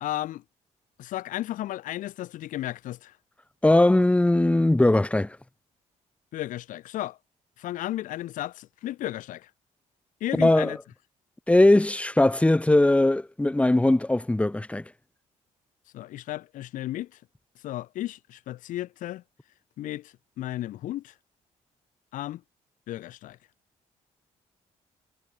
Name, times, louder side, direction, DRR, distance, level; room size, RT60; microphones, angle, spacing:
voice 1, 0.0-0.4 1.0-3.2 6.3-7.2 7.6-9.5 10.2-10.8 15.9-17.2 17.6-19.2 19.8-21.1 22.1-22.4 22.9-23.4, left 14 dB, 75° left, 0.6 m, -34 dB
voice 2, 3.6-5.4 10.4-10.7 11.5-14.8, left 1 dB, 10° left, 1.0 m, -20 dB
cardioid pair, 75°, 14 cm